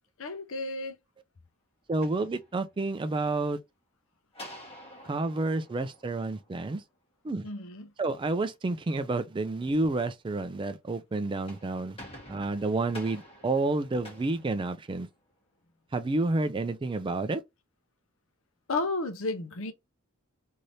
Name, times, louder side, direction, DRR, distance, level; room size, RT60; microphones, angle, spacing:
voice 1, 0.2-1.0 7.4-7.9 18.7-19.7, left 2 dB, 65° left, 0.7 m, -32 dB
sound 1, 1.8-3.0 4.3-6.8 11.2-15.3, equal, 25° left, 1.4 m, -49 dB
voice 2, 1.9-3.6 5.0-6.8 7.2-7.4 8.0-12.0 12.3-15.1 15.9-17.4, right 2 dB, 25° right, 0.3 m, -29 dB
3.2 x 2.7 x 2.6 m
head